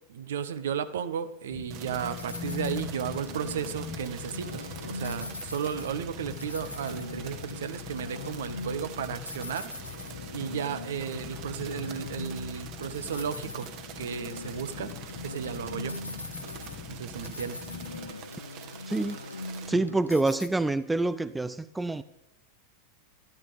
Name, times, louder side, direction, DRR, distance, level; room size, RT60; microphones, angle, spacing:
voice 1, 0.1-4.6 4.9-9.7 10.3-13.7 14.0-14.9 15.2-15.9 16.9-17.6, right 8 dB, 60° right, 1.2 m, -34 dB
sound 1, 1.5-18.1, left 9 dB, 25° left, 1.1 m, -43 dB
sound 2, 1.7-19.7, right 9 dB, 40° right, 1.8 m, -46 dB
sound 3, 2.1-20.5, left 2 dB, 80° left, 0.7 m, -42 dB
voice 2, 18.9-19.2 19.7-22.0, right 2 dB, 10° right, 0.5 m, -27 dB
13.5 x 13.0 x 7.0 m
figure-of-eight pair, 90°, 0 cm